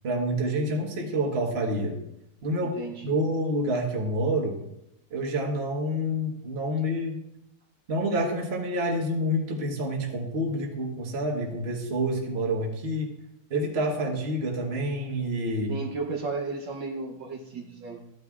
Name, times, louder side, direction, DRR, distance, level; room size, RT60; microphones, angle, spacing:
voice 1, 0.0-2.0 2.4-2.7 3.0-4.6 5.1-7.2 7.9-13.1 13.5-15.7, right 1 dB, 35° right, 1 dB, 1.3 m, -28 dB
voice 2, 2.6-3.2 15.7-18.1, right 4 dB, 60° right, 1 dB, 1.5 m, -34 dB
14.0 x 9.4 x 2.4 m, 0.82 s
omnidirectional pair, 2.4 m